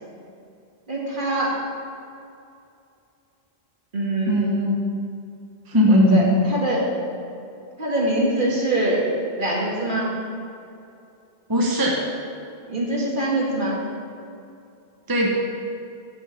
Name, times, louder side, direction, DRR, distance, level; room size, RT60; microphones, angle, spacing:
voice 1, 0.9-1.5 3.9-4.5 5.9-6.9 7.8-9.1 9.4-10.1 12.7-13.8, right 1 dB, 50° right, -4 dB, 2.0 m, -24 dB
voice 2, 4.3-4.8 5.7-6.2 11.5-12.0 15.1-15.3, equal, 20° right, -2 dB, 0.9 m, -18 dB
8.6 x 6.5 x 6.5 m, 2.6 s
omnidirectional pair, 1.1 m